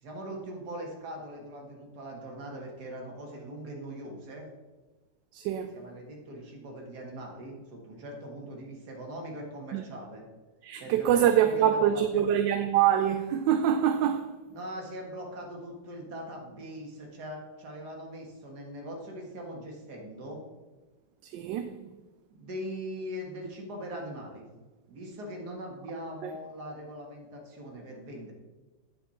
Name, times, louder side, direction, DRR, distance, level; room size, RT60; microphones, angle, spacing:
voice 1, 0.0-4.5 5.7-10.2 10.8-12.4 14.5-20.4 22.3-24.5 24.9-28.3, equal, 60° right, 2.3 m, -41 dB
voice 2, 5.3-5.8 9.7-9.8 10.6-14.3 21.2-21.9 26.2-26.3, right 10 dB, 80° right, 1.2 m, -25 dB
9.2 x 7.5 x 4.3 m
omnidirectional pair, 2.0 m